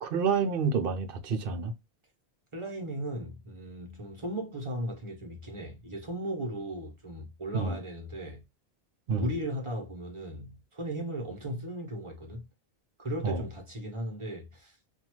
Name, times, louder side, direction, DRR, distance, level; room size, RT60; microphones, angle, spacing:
voice 1, 0.0-1.7 7.5-7.8 9.1-9.3 13.2-13.4, right 5 dB, 65° right, 0.8 m, -28 dB
voice 2, 2.5-8.4 9.1-12.5 13.0-14.8, right 1 dB, 30° right, 0.9 m, -37 dB
2.6 x 2.3 x 3.0 m
omnidirectional pair, 1.1 m